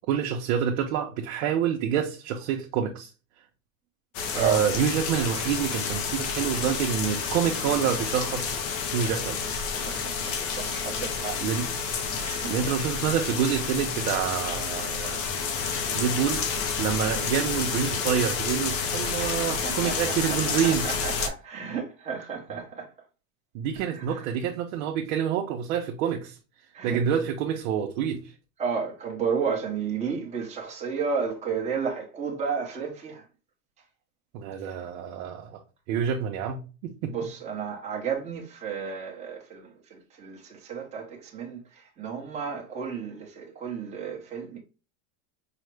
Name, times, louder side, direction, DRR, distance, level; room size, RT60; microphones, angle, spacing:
voice 1, 0.1-3.1 4.3-8.5 8.9-9.4 11.4-11.7 12.5-15.3 15.9-16.4 16.8-20.9 23.5-26.4 26.8-28.3 34.3-35.6 35.9-37.1, right 8 dB, 75° right, 0.7 m, -27 dB
sound 1, 4.1-21.3, left 5 dB, 35° left, 0.4 m, -30 dB
voice 2, 9.7-11.4 12.1-12.5 17.1-17.2 19.2-22.9 23.9-24.3 26.7-27.2 28.6-33.2 34.6-34.9 37.1-44.6, right 6 dB, 15° right, 0.8 m, -33 dB
4.8 x 2.1 x 3.1 m
supercardioid pair, 155°, 41 cm